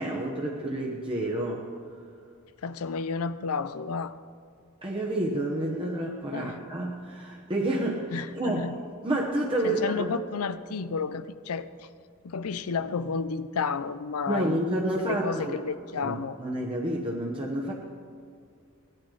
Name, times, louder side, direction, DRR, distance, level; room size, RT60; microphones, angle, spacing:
voice 1, 0.0-1.7 4.8-8.7 9.0-10.0 14.3-15.6 16.0-17.7, right 1 dB, 25° right, -2 dB, 1.1 m, -29 dB
voice 2, 2.6-4.1 6.3-6.6 8.1-8.8 9.6-11.9 12.2-14.6 14.9-16.4, left 5 dB, 85° left, 14 dB, 0.5 m, -31 dB
18.0 x 12.0 x 3.9 m, 2.2 s
head